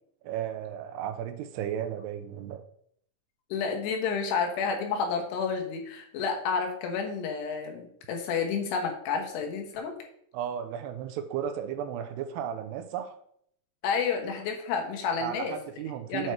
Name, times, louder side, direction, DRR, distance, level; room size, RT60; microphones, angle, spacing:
voice 1, 0.2-2.6 10.3-13.2 15.2-16.3, right 9 dB, 85° right, 7 dB, 2.7 m, -34 dB
voice 2, 3.5-9.9 13.8-15.6 16.1-16.3, left 5 dB, 90° left, 3 dB, 3.3 m, -30 dB
8.0 x 4.7 x 4.5 m, 0.67 s
omnidirectional pair, 4.7 m